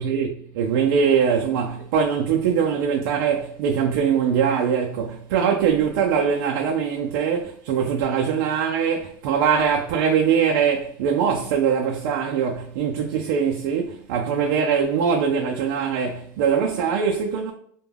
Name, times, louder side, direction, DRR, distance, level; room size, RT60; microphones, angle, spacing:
voice 1, 0.0-17.5, right 7 dB, 75° right, 0.4 m, -22 dB
2.2 x 2.2 x 3.3 m
supercardioid pair, 155°, 12 cm